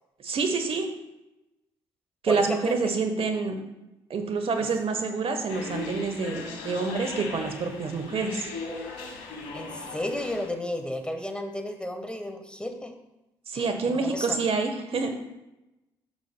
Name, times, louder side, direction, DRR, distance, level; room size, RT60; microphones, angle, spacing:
voice 1, 0.2-0.9 2.2-3.5 4.1-8.5 13.5-15.1, right 4 dB, 50° right, 5 dB, 1.2 m, -27 dB
voice 2, 2.3-2.7 9.5-12.9 13.5-14.4, left 1 dB, 10° left, 6 dB, 1.2 m, -33 dB
sound 1, 5.5-10.5, left 4 dB, 80° left, 1.3 m, -38 dB
10.5 x 7.0 x 2.2 m, 0.95 s
hypercardioid pair, 50°, 12 cm